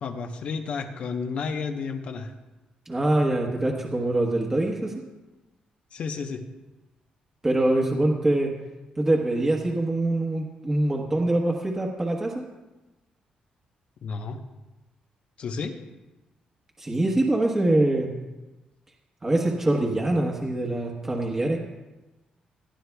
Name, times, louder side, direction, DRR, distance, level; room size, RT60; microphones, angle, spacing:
voice 1, 0.0-2.3 5.9-6.4 14.0-14.4 15.4-15.8, left 5 dB, 60° left, 6 dB, 0.9 m, -31 dB
voice 2, 2.9-4.9 7.4-8.5 9.0-12.3 16.8-18.1 19.2-21.6, right 1 dB, 20° right, 0 dB, 1.2 m, -24 dB
17.5 x 11.5 x 2.3 m, 1.1 s
cardioid pair, 120°, 2 cm